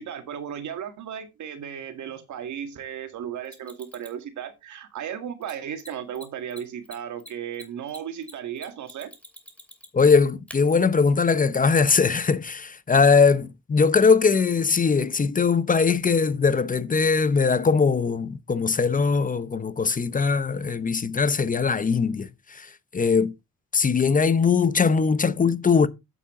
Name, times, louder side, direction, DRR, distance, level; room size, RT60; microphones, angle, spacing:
voice 1, 0.0-9.1, right 9 dB, 70° right, 2.0 m, -35 dB
Mechanisms, 3.4-4.2 5.4-5.5 5.8-5.9 6.1-6.2 6.5-10.1 10.5-10.6 12.0-12.1, left 1 dB, 5° left, 2.5 m, -45 dB
voice 2, 9.9-22.7 22.9-23.3 23.7-25.9, left 5 dB, 25° left, 0.8 m, -21 dB
8.4 x 8.4 x 3.7 m
cardioid pair, 90°, 30 cm